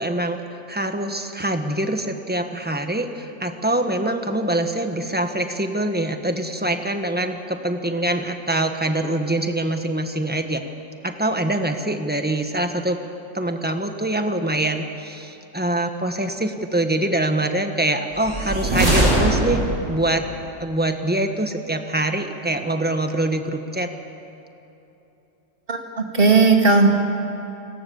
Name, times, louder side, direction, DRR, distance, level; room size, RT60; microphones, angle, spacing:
voice 1, 0.0-10.6 11.0-13.0 13.3-19.6 19.9-20.3 20.6-23.9, right 1 dB, 10° right, 6 dB, 1.3 m, -24 dB
sound 1, 18.2-20.0, right 1 dB, 65° right, 5.9 m, -20 dB
voice 2, 25.7-26.9, right 4 dB, 45° right, 2 dB, 2.6 m, -16 dB
30.0 x 18.5 x 7.2 m, 3.0 s
omnidirectional pair, 1.3 m